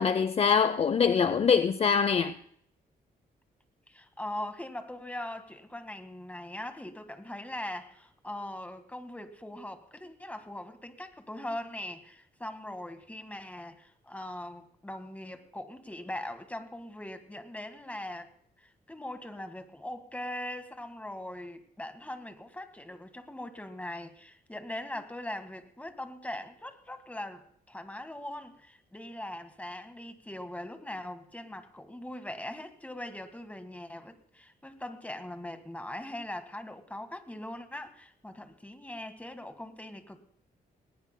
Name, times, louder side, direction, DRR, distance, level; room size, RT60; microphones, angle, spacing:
voice 1, 0.0-2.3, left 6 dB, 40° left, 0.6 m, -24 dB
voice 2, 3.9-18.3 18.6-40.2, left 1 dB, 10° left, 1.7 m, -41 dB
21.0 x 19.0 x 2.2 m
cardioid pair, 110°, 16 cm